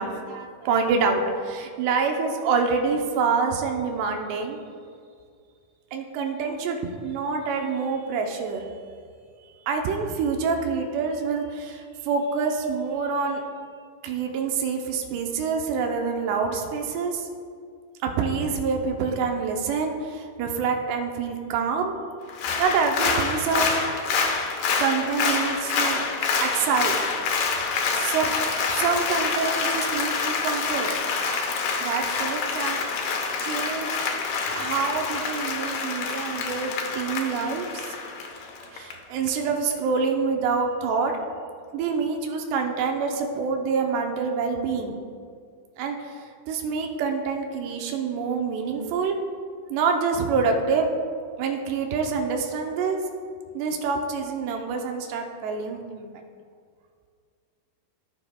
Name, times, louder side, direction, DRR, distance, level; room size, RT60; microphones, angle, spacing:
voice 1, 0.0-4.7 5.9-8.7 9.7-13.4 14.0-17.3 18.0-22.0 22.6-23.7 24.8-26.1 26.4-27.0 27.9-28.3 28.7-30.1 30.4-30.9 31.8-32.8 33.4-34.0 34.5-37.9 38.7-41.1 41.7-45.0 45.8-49.2 49.7-50.9 51.4-53.0 53.5-56.1, right 5 dB, 90° right, 3 dB, 2.9 m, -26 dB
Applause, 22.3-38.9 39.3-39.4, left 5 dB, 70° left, 2.3 m, -27 dB
18.5 x 7.1 x 2.3 m, 2.2 s
omnidirectional pair, 4.7 m